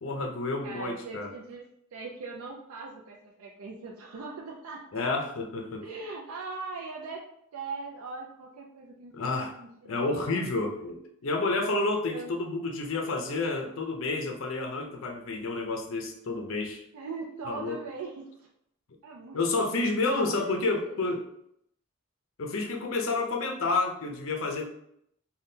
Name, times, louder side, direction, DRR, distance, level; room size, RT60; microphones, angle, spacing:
voice 1, 0.0-1.3 4.9-5.9 9.1-9.5 9.8-16.8 17.4-17.8 19.3-21.2 22.4-24.6, left 3 dB, 65° left, 3 dB, 0.5 m, -30 dB
voice 2, 0.6-1.6 1.9-5.0 5.8-7.2 7.5-9.1 9.6-10.5 12.1-12.3 16.9-18.5 19.0-19.4 20.0-20.5 20.9-21.1, right 4 dB, 85° right, -1 dB, 0.4 m, -40 dB
3.5 x 2.2 x 2.7 m, 0.72 s
head